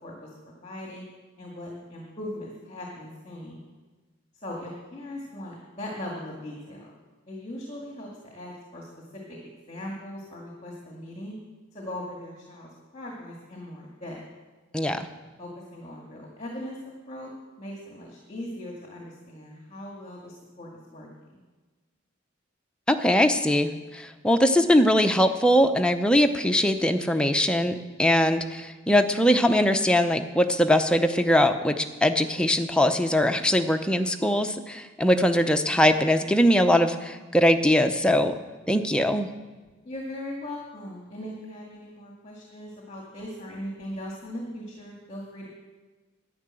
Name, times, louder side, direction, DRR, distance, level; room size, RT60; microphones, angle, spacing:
voice 1, 0.0-1.0 1.4-3.6 4.4-6.9 7.3-11.4 11.7-14.2 15.4-16.8 17.1-17.3 17.6-21.4 39.8-45.5, left 1 dB, 30° left, -1 dB, 2.0 m, -39 dB
voice 2, 14.7-15.1 22.9-38.3 38.7-39.3, equal, 5° left, 6 dB, 0.6 m, -21 dB
10.5 x 9.8 x 7.6 m, 1.3 s
head